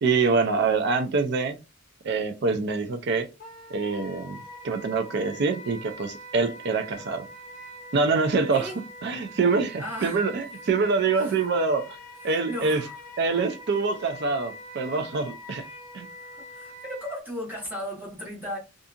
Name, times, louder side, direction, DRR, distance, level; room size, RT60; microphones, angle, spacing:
voice 1, 0.0-1.6 2.0-3.3 3.7-4.4 4.6-7.3 7.9-8.7 9.0-12.0 12.2-12.8 13.2-15.6 15.9-16.1, right 4 dB, 55° right, 0.4 m, -25 dB
Wind instrument woodwind instrument, 3.4-17.2, equal, 40° left, 0.6 m, -44 dB
voice 2, 9.8-10.2 11.1-11.4 12.2-12.9 16.5-18.6, equal, 10° right, 1.2 m, -36 dB
2.6 x 2.5 x 2.4 m
head